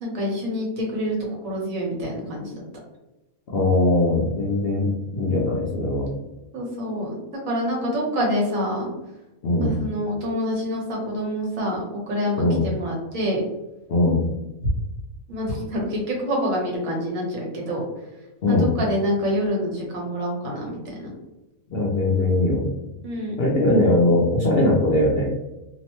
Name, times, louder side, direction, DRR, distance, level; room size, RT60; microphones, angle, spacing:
voice 1, 0.0-1.2 1.4-2.6 6.5-7.2 7.5-8.9 9.6-13.4 15.3-17.8 18.5-21.1 23.0-23.4, equal, 65° right, -2 dB, 1.2 m, -26 dB
voice 2, 3.5-6.1 9.4-9.7 12.4-12.6 13.9-14.2 18.4-18.7 21.7-22.6 23.4-25.3, left 2 dB, 60° left, -4 dB, 0.6 m, -20 dB
2.8 x 2.1 x 2.9 m, 0.99 s
omnidirectional pair, 1.6 m